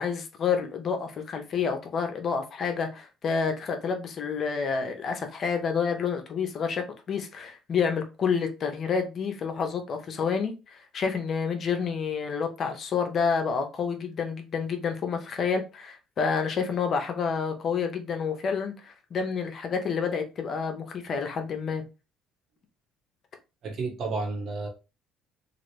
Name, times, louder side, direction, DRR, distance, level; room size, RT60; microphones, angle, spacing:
voice 1, 0.0-21.8, left 6 dB, 50° left, 0.7 m, -29 dB
voice 2, 23.6-24.7, right 3 dB, 55° right, 1.2 m, -31 dB
2.9 x 2.5 x 3.1 m
supercardioid pair, 80°, 0 cm